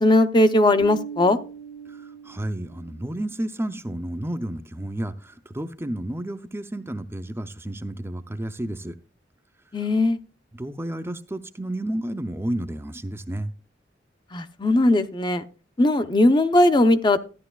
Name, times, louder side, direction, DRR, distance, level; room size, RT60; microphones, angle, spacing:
voice 1, 0.0-1.4 9.7-10.2 14.3-15.4 15.8-17.2, left 1 dB, 25° left, 10 dB, 0.7 m, -19 dB
Bass guitar, 0.8-3.2, right 7 dB, 70° left, 6.5 m, -40 dB
voice 2, 1.9-8.9 10.5-13.5, right 1 dB, 15° right, 7 dB, 0.5 m, -31 dB
13.5 x 10.5 x 2.3 m, 0.35 s
head